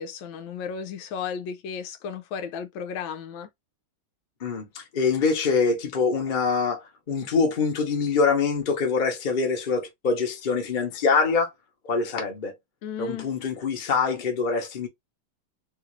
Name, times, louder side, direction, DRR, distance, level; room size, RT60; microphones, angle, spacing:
voice 1, 0.0-3.5 12.8-13.3, left 7 dB, 85° left, 1.4 m, -34 dB
voice 2, 4.4-11.5 11.8-12.6 13.0-14.9, left 4 dB, 35° left, 0.8 m, -24 dB
3.4 x 2.5 x 3.1 m
omnidirectional pair, 2.1 m